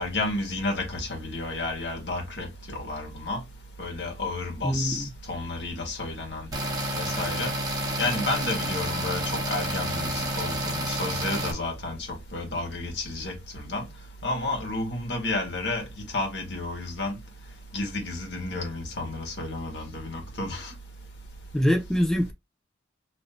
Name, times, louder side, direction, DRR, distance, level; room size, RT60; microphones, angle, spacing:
voice 1, 0.0-3.4 3.8-6.5 7.0-7.5 8.0-13.9 14.2-15.8 16.1-17.2 17.7-20.7, left 2 dB, 70° left, 1.5 m, -31 dB
voice 2, 4.6-5.1 21.5-22.3, equal, 5° left, 0.3 m, -24 dB
sound 1, 6.5-11.5, right 1 dB, 20° right, 0.9 m, -29 dB
3.0 x 2.7 x 4.2 m
head